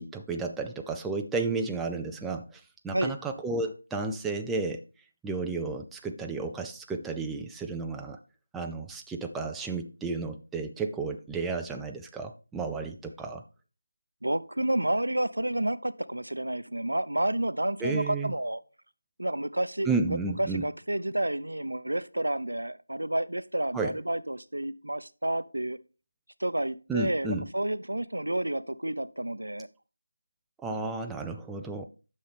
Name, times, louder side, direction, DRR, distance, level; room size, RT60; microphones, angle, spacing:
voice 1, 0.0-4.8 5.2-8.2 8.5-13.4 17.8-18.3 19.9-20.6 23.7-23.9 26.9-27.4 30.6-31.8, right 3 dB, 5° right, 3 dB, 0.3 m, -32 dB
voice 2, 14.2-18.6 19.2-25.8 26.4-29.7, right 1 dB, 85° right, 15 dB, 0.6 m, -30 dB
10.0 x 6.6 x 3.4 m, 0.33 s
figure-of-eight pair, 170°, 0 cm